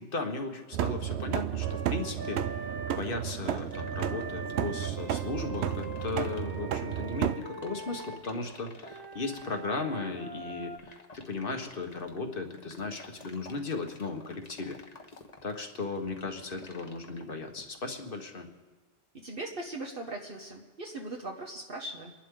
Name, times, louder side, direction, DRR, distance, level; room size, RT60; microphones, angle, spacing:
voice 1, 0.0-2.4 2.9-14.8 15.4-18.5, left 3 dB, 55° left, 5 dB, 1.5 m, -36 dB
sound 1, 0.7-7.4, right 10 dB, 80° right, 0.9 m, -32 dB
Wind instrument woodwind instrument, 1.6-3.0 3.7-8.2 8.8-10.8, right 3 dB, 25° right, 1.0 m, -42 dB
sound 2, 2.0-17.9, left 3 dB, 40° left, 1.2 m, -51 dB
voice 2, 19.2-22.1, right 2 dB, 55° right, 0 dB, 1.5 m, -39 dB
29.5 x 11.5 x 3.8 m, 1.3 s
omnidirectional pair, 1.1 m